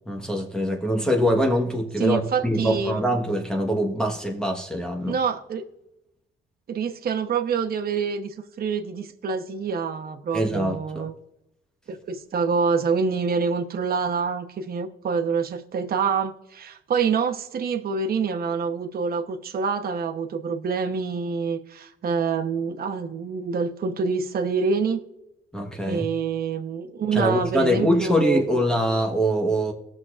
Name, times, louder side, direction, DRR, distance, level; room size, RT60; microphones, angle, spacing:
voice 1, 0.1-5.2 10.3-11.1 25.5-26.1 27.1-29.7, equal, 5° left, 1.2 m, -23 dB
voice 2, 2.0-3.0 5.1-5.6 6.7-11.1 11.9-25.0 25.9-28.6, right 5 dB, 50° right, 0.9 m, -26 dB
18.5 x 6.4 x 2.5 m
cardioid pair, 90°, 20 cm